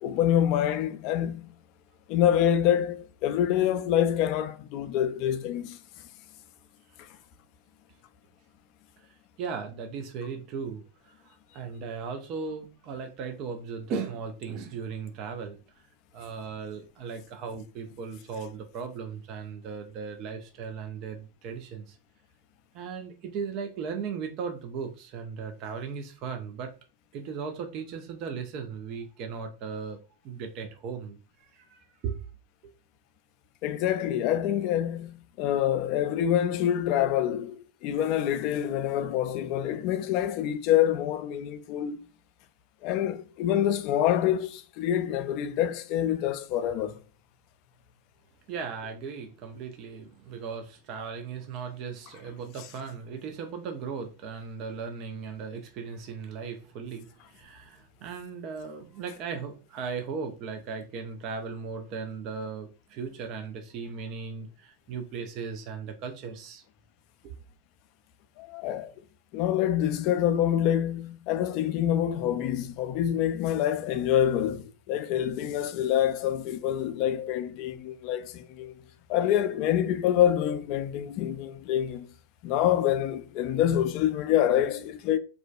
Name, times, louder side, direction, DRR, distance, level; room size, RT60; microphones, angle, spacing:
voice 1, 0.0-1.5 2.1-5.8 7.0-7.1 33.6-42.0 42.8-47.0 68.4-68.9 69.3-78.7 79.1-82.1 82.4-85.2, left 10 dB, 50° left, 0.3 m, -26 dB
voice 2, 9.4-15.6 16.1-22.0 22.7-26.7 27.1-32.2 48.5-66.6 67.2-67.3, right 5 dB, 45° right, 0.4 m, -37 dB
2.4 x 2.1 x 2.4 m
hypercardioid pair, 100°, 0 cm